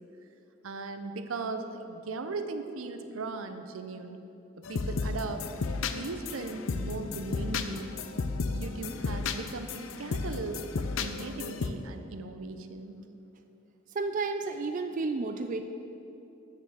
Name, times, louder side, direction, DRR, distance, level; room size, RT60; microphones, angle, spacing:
voice 1, 0.6-4.2 4.6-5.5 5.9-7.9 8.5-13.0, right 3 dB, 85° right, 8 dB, 0.6 m, -38 dB
sound 1, 4.6-11.7, left 4 dB, 75° left, 0.5 m, -34 dB
voice 2, 13.9-15.6, right 3 dB, 40° right, 7 dB, 0.4 m, -31 dB
7.1 x 6.8 x 7.5 m, 2.9 s
head